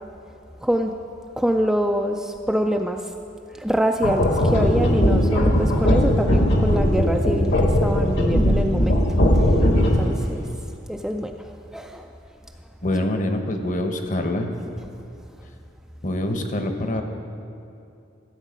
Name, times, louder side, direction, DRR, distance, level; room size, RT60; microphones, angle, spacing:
voice 1, 0.6-0.9 1.4-3.1 3.5-9.0 9.3-9.6 9.9-10.5 10.9-11.4 11.7-12.1, equal, 5° right, 3 dB, 0.3 m, -25 dB
sound 1, 4.0-10.2, equal, 70° left, 1.5 m, -19 dB
voice 2, 12.8-14.5 16.0-17.0, left 1 dB, 40° left, 6 dB, 0.9 m, -25 dB
14.5 x 7.3 x 5.1 m, 2.6 s
head